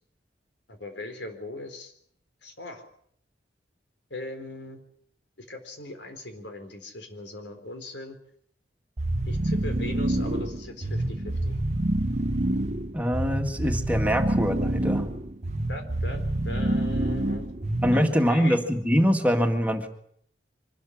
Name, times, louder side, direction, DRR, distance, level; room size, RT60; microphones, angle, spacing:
voice 1, 0.7-1.9 2.4-2.8 4.1-4.8 5.4-8.2 9.2-11.6 15.7-17.5 17.9-18.6, left 1 dB, 85° left, 7 dB, 4.1 m, -39 dB
sound 1, 9.0-18.2, right 1 dB, 40° right, 1.0 m, -27 dB
voice 2, 12.9-15.1 17.8-19.9, equal, 10° right, 4 dB, 2.0 m, -24 dB
24.5 x 13.5 x 10.0 m, 0.67 s
head